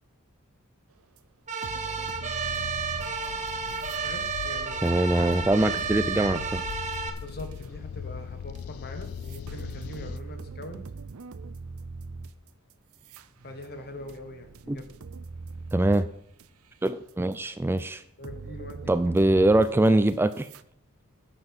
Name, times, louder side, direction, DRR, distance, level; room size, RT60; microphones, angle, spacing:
sound 1, 1.2-1.3 1.6-4.0 4.4-7.7 8.5-8.6 9.0-16.5 16.8-17.4 17.8-17.9 18.2-20.6, right 4 dB, 75° right, 0.6 m, -42 dB
sound 2, 1.5-7.1, right 5 dB, 35° right, 1.2 m, -32 dB
sound 3, 2.4-10.2, left 7 dB, 70° left, 0.3 m, -40 dB
voice 1, 4.0-5.0 7.2-10.8 13.4-14.9 18.2-18.9, left 1 dB, 50° left, 7 dB, 1.6 m, -42 dB
voice 2, 4.8-6.6 14.7-14.8 15.7-16.1 16.8-18.0 18.9-20.5, right 1 dB, 10° right, 12 dB, 0.3 m, -23 dB
9.6 x 7.7 x 6.2 m, 0.69 s
head